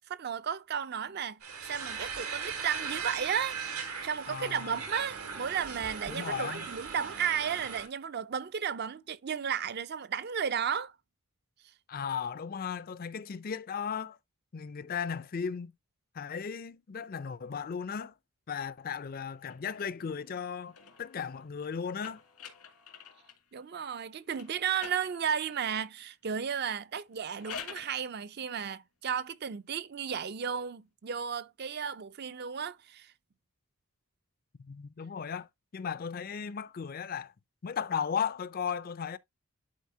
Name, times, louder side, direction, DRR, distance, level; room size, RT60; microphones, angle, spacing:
voice 1, 0.0-10.9 23.5-33.1, right 7 dB, 45° right, 0.4 m, -34 dB
sound 1, 1.4-7.9, right 6 dB, 90° right, 2.7 m, -38 dB
voice 2, 4.3-4.8 6.1-6.6 11.9-14.2 14.5-15.7 16.1-18.1 18.5-22.2 34.6-35.5 35.7-37.3 37.6-39.2, left 6 dB, 40° left, 0.4 m, -36 dB
sound 2, 19.4-23.5 24.3-25.7 27.1-28.0, left 6 dB, 90° left, 2.0 m, -48 dB
10.5 x 4.2 x 2.7 m
head